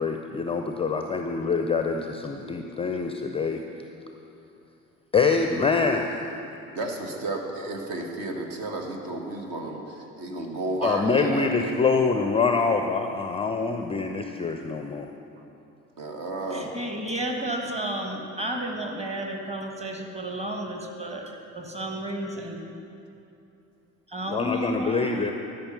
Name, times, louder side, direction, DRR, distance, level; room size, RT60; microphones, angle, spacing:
voice 1, 0.0-3.6 5.1-6.2 10.8-15.1 24.3-25.3, left 4 dB, 15° left, 5 dB, 0.4 m, -25 dB
voice 2, 6.7-11.8 16.0-16.7, right 2 dB, 55° right, 2 dB, 1.4 m, -32 dB
voice 3, 16.5-21.2 21.5-22.6 24.1-25.3, right 1 dB, 15° right, 2 dB, 1.5 m, -32 dB
13.0 x 5.6 x 6.7 m, 2.7 s
figure-of-eight pair, 55°, 41 cm